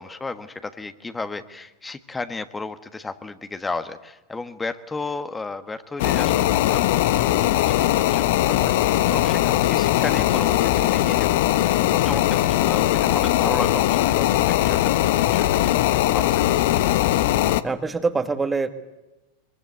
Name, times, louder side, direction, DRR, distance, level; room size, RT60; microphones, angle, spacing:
voice 1, 0.0-14.8 15.3-16.6, left 3 dB, 15° left, 10 dB, 1.5 m, -34 dB
sound 1, 6.0-17.6, left 13 dB, 60° left, 1.0 m, -20 dB
voice 2, 17.6-18.7, right 4 dB, 15° right, 9 dB, 1.8 m, -24 dB
23.5 x 23.5 x 8.1 m, 1.0 s
figure-of-eight pair, 90°, 0 cm